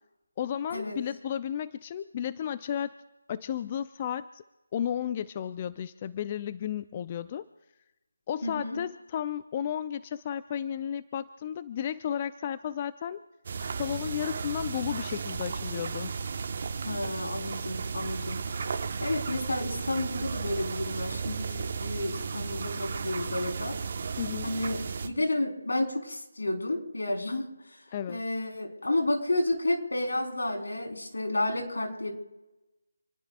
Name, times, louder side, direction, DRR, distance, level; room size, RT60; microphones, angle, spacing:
voice 1, 0.4-2.9 3.3-4.4 4.7-7.4 8.3-13.2 13.8-16.1 24.2-24.5 27.9-28.2, left 9 dB, 25° left, 14 dB, 0.4 m, -33 dB
voice 2, 8.4-8.8 16.8-18.4 19.0-23.8 24.4-27.5 28.1-32.1, left 1 dB, 75° left, 2 dB, 4.1 m, -31 dB
sound 1, 13.4-25.1, right 5 dB, 45° right, 1.3 m, -34 dB
28.0 x 19.0 x 2.5 m, 1.0 s
figure-of-eight pair, 160°, 0 cm